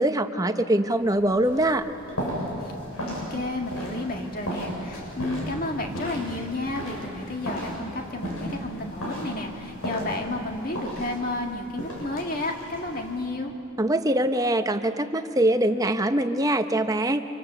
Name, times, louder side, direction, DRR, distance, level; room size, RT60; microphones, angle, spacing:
voice 1, 0.0-1.9 13.8-17.2, right 1 dB, 15° right, 8 dB, 0.7 m, -23 dB
sound 1, 1.0-13.2, equal, 80° left, 7.5 m, -35 dB
voice 2, 3.0-13.5, left 2 dB, 40° left, 2 dB, 2.0 m, -32 dB
26.0 x 25.0 x 7.0 m, 2.9 s
head